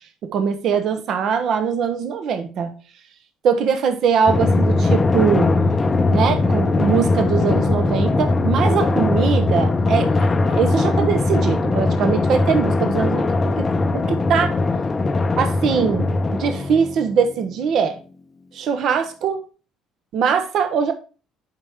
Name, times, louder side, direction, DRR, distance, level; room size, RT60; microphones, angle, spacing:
voice 1, 0.2-2.7 3.4-5.5 6.1-13.7 13.9-14.5 15.4-18.0 18.5-19.4 20.1-20.9, right 6 dB, 60° right, 8 dB, 0.8 m, -21 dB
Drum, 4.3-17.3, left 3 dB, 30° left, 0.5 m, -20 dB
7.6 x 4.6 x 3.5 m, 0.35 s
supercardioid pair, 80°, 0 cm